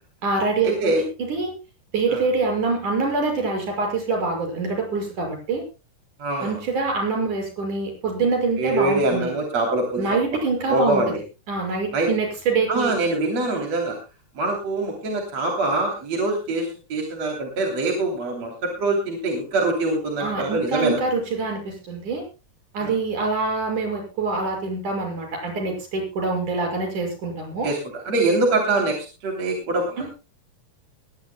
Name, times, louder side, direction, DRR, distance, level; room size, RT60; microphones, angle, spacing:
voice 1, 0.2-1.5 1.9-5.6 6.4-9.3 10.0-11.0 11.5-12.9 20.2-22.2 22.7-27.7 30.0-30.1, right 3 dB, 65° right, 2 dB, 7.5 m, -25 dB
voice 2, 6.2-6.6 8.6-10.0 10.7-11.1 11.9-12.1 12.7-14.0 14.4-18.5 18.8-21.0 22.8-22.9 27.6-27.8 28.1-29.0 29.2-30.1, right 2 dB, 50° right, 2 dB, 4.2 m, -23 dB
21.5 x 16.5 x 2.2 m, 0.30 s
omnidirectional pair, 3.8 m